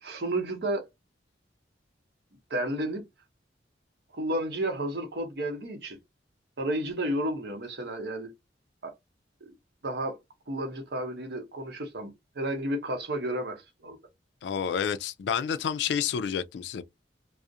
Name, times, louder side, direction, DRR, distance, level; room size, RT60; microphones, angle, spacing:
voice 1, 0.0-0.9 2.5-3.0 4.1-6.0 6.6-8.3 8.8-8.9 9.4-9.5 9.8-10.2 10.5-14.0, right 1 dB, 65° right, 0.8 m, -32 dB
voice 2, 14.4-16.8, left 7 dB, 75° left, 0.3 m, -29 dB
2.4 x 2.0 x 2.6 m
head